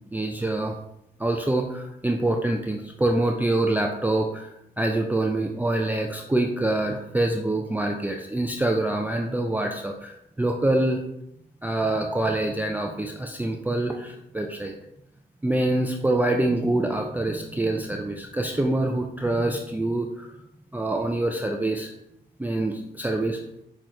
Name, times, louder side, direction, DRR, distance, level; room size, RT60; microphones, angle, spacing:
voice 1, 0.1-0.8 1.2-4.5 4.8-11.0 11.6-14.7 15.4-20.3 20.7-21.9 22.4-23.4, right 2 dB, 10° right, 2 dB, 0.4 m, -25 dB
5.9 x 2.4 x 3.1 m, 0.81 s
supercardioid pair, 45°, 19 cm